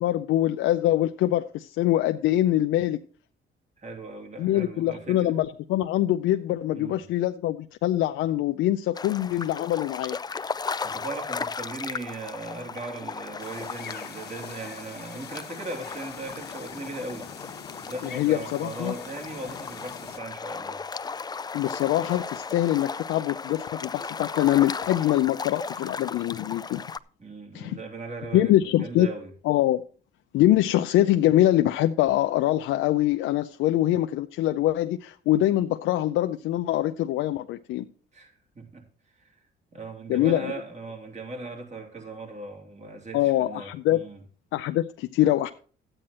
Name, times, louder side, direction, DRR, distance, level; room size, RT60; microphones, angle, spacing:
voice 1, 0.0-3.0 4.4-10.2 18.0-18.9 21.5-26.8 27.5-27.8 28.3-29.1 29.4-29.8 30.3-37.9 40.1-40.5 43.1-44.0 44.5-45.5, left 13 dB, 90° left, 0.5 m, -24 dB
voice 2, 3.8-5.4 6.7-7.0 8.9-9.0 10.8-17.3 17.9-20.8 27.2-29.3 38.1-38.8 39.2-39.4 39.7-44.2, right 2 dB, 35° right, 3.4 m, -38 dB
sound 1, 8.9-27.0, left 5 dB, 20° left, 0.4 m, -36 dB
sound 2, 13.4-20.2, left 7 dB, 55° left, 1.3 m, -44 dB
12.5 x 8.9 x 4.3 m
cardioid pair, 90°, 20 cm